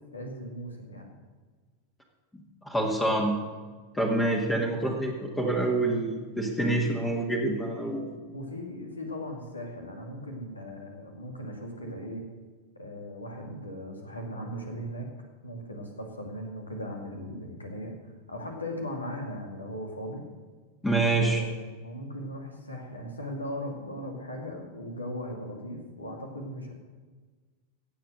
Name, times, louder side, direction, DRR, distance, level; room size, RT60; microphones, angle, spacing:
voice 1, 0.1-1.2 8.3-12.2 12.7-15.1 15.4-17.9 18.3-20.3 21.2-26.7, equal, 80° left, 2 dB, 2.4 m, -38 dB
voice 2, 2.3-3.3 3.9-8.1 20.8-21.4, right 2 dB, 10° left, 0 dB, 1.7 m, -27 dB
16.5 x 7.5 x 6.4 m, 1.4 s
figure-of-eight pair, 90°, 0 cm